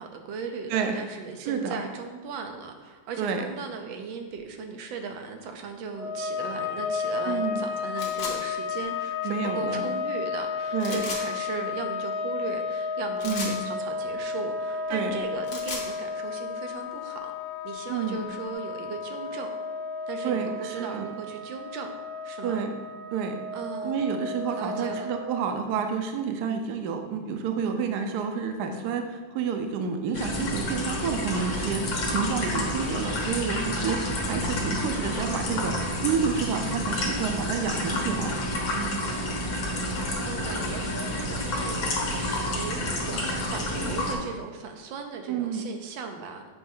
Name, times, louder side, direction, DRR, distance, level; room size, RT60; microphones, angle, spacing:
voice 1, 0.0-17.3 17.6-19.5 20.1-21.9 22.2-22.6 23.5-24.1 24.6-25.1 40.2-46.4, right 5 dB, 90° right, 5 dB, 1.5 m, -37 dB
voice 2, 1.5-1.8 3.2-3.4 7.3-7.6 9.2-9.8 10.7-11.0 13.2-13.6 14.9-15.2 17.9-18.2 20.2-21.1 22.4-22.7 23.1-23.3 23.8-38.4 38.7-39.0 45.3-45.7, right 6 dB, 70° right, 5 dB, 1.1 m, -29 dB
sound 1, 5.9-25.6, left 4 dB, 45° left, 1.1 m, -33 dB
sound 2, 8.0-8.4 10.8-11.2 13.2-13.6 15.3-15.9, left 3 dB, 60° left, 1.5 m, -34 dB
sound 3, 30.1-44.1, left 1 dB, 80° left, 1.9 m, -29 dB
7.7 x 3.2 x 5.4 m, 1.4 s
omnidirectional pair, 2.0 m